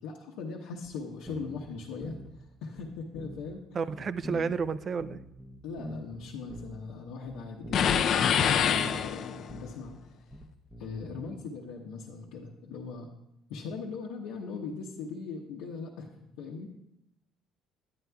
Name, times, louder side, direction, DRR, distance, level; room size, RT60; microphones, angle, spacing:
voice 1, 0.0-3.6 5.6-10.4 10.8-13.1 13.5-16.7, left 4 dB, 85° left, -3 dB, 0.8 m, -40 dB
sound 1, 0.9-1.0 1.3-2.5 2.8-3.6 3.9-7.0 7.3-8.1 8.4-9.2 9.5-11.3, equal, 10° right, 0.7 m, -44 dB
voice 2, 3.7-5.2, right 5 dB, 40° right, 15 dB, 0.3 m, -31 dB
sound 2, 7.7-9.6, left 7 dB, 55° left, 0.4 m, -25 dB
10.0 x 9.4 x 2.3 m, 0.84 s
cardioid pair, 105°, 0 cm